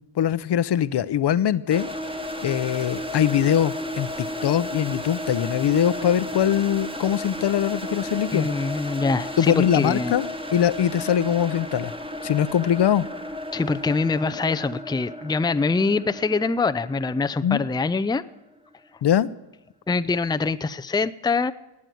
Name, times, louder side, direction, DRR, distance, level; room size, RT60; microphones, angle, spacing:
voice 1, 0.0-1.9 2.4-8.5 9.4-11.9 12.2-13.1 17.4-17.6 19.0-19.3, left 10 dB, 55° left, 16 dB, 0.8 m, -22 dB
sound 1, 1.7-18.5, left 1 dB, 10° right, 1.5 m, -34 dB
voice 2, 8.3-10.1 13.5-18.2 19.9-21.5, left 4 dB, 10° left, 12 dB, 0.5 m, -24 dB
18.0 x 8.7 x 9.2 m, 0.94 s
cardioid pair, 75°, 49 cm